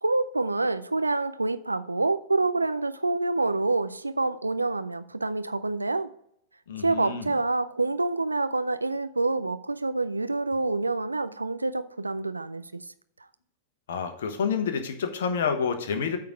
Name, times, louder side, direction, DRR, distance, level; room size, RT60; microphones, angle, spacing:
voice 1, 0.0-6.1 6.8-12.8, right 2 dB, 90° right, 0.4 m, -27 dB
voice 2, 6.7-7.3 13.9-16.2, left 6 dB, 65° left, 1.1 m, -28 dB
8.6 x 3.8 x 6.1 m
figure-of-eight pair, 95°, 0 cm